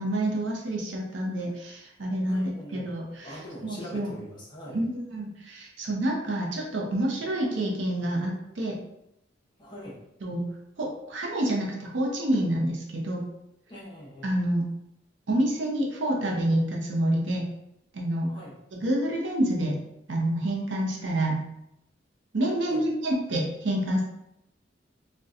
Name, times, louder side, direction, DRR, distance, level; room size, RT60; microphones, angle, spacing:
voice 1, 0.0-3.4 3.6-4.1 4.7-8.8 10.2-10.4 10.8-13.2 14.2-14.6 15.3-17.4 17.9-18.3 18.7-19.8 20.1-21.4 22.3-24.0, right 1 dB, 80° right, -1 dB, 0.6 m, -28 dB
voice 2, 2.3-2.9 3.2-4.9 9.6-10.0 13.7-14.4 18.3-18.5 22.7-22.8, equal, 25° left, -5 dB, 0.6 m, -42 dB
4.0 x 2.2 x 2.4 m, 0.83 s
head